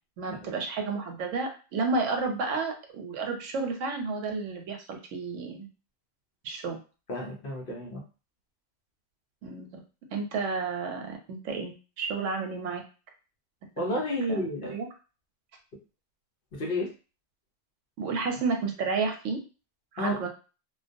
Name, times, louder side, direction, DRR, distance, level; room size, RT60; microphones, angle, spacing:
voice 1, 0.2-5.7 6.4-6.8 9.4-9.7 10.1-12.8 13.8-14.0 14.3-14.9 18.0-19.4 19.9-20.3, right 4 dB, 90° right, 4 dB, 1.0 m, -31 dB
voice 2, 7.1-8.0 13.8-14.8 16.5-16.9 20.0-20.3, left 1 dB, 55° left, -1 dB, 0.7 m, -31 dB
2.2 x 2.2 x 2.5 m, 0.34 s
omnidirectional pair, 1.2 m